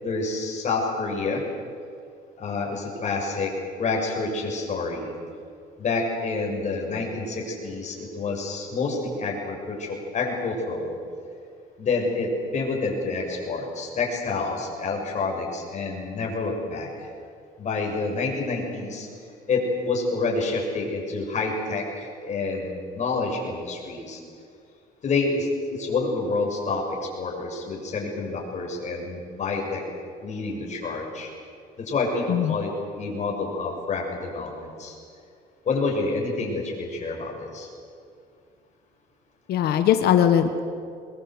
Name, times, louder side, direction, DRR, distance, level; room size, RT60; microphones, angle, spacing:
voice 1, 0.0-1.4 2.4-3.5 3.8-5.1 5.8-11.0 11.8-17.1 17.6-19.1 19.5-24.2 25.0-29.8 30.2-31.3 31.8-35.0 35.7-37.7, left 3 dB, 45° left, 0 dB, 7.1 m, -28 dB
voice 2, 39.5-40.6, left 9 dB, 70° left, 8 dB, 1.5 m, -20 dB
22.5 x 21.5 x 8.1 m, 2.4 s
cardioid pair, 110°, 17 cm